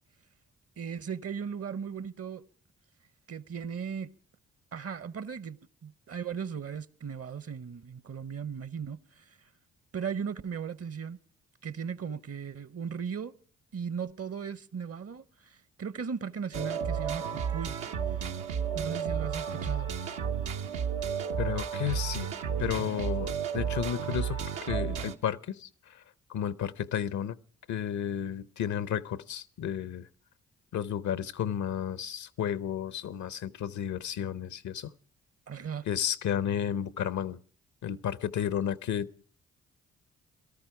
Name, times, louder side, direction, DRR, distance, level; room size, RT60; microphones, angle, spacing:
voice 1, 0.8-2.4 3.3-4.1 4.7-9.3 9.9-11.2 11.6-13.3 13.7-17.7 18.7-19.9 35.5-35.8, right 6 dB, 50° right, 0.9 m, -37 dB
sound 1, 16.5-25.2, right 7 dB, 80° right, 0.9 m, -32 dB
voice 2, 21.4-22.3 22.6-24.4 24.7-25.7 25.9-26.0 26.3-27.4 27.7-30.1 30.7-34.9 35.9-37.4 37.8-39.1, left 9 dB, 70° left, 0.7 m, -32 dB
18.0 x 13.5 x 4.7 m
supercardioid pair, 45°, 30 cm